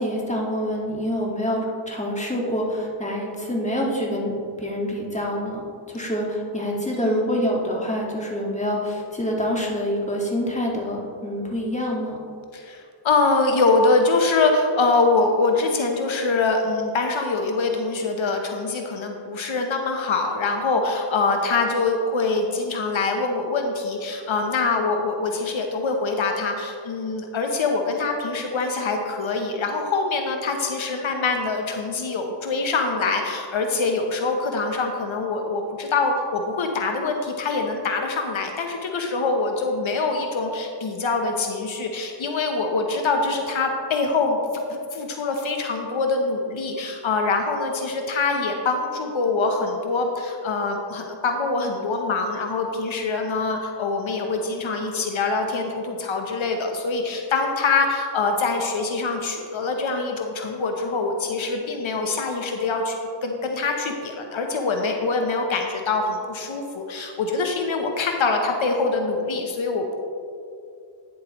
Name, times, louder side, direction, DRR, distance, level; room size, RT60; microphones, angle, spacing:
voice 1, 0.0-4.3 4.6-5.6 5.9-12.2, equal, 15° left, -2 dB, 1.7 m, -26 dB
voice 2, 6.9-7.4 12.5-44.4 44.7-63.0 63.2-70.0, left 3 dB, 85° left, 3 dB, 0.8 m, -24 dB
9.6 x 7.4 x 3.0 m, 2.4 s
cardioid pair, 45°, 46 cm